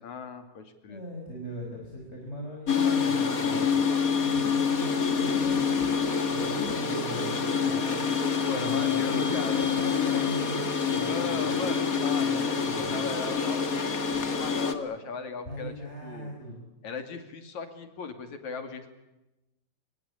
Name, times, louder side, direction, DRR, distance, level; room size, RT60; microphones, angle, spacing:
voice 1, 0.0-1.0 8.4-9.7 11.1-15.7 16.0-16.3 16.8-18.9, left 5 dB, 55° left, 8 dB, 3.8 m, -37 dB
voice 2, 0.9-3.8 4.2-8.0 8.5-11.6 11.9-13.0 15.5-16.7, equal, 15° left, 0 dB, 5.6 m, -39 dB
sound 1, 2.7-14.7, left 6 dB, 35° left, 1.6 m, -27 dB
25.5 x 23.0 x 8.5 m, 0.98 s
omnidirectional pair, 4.2 m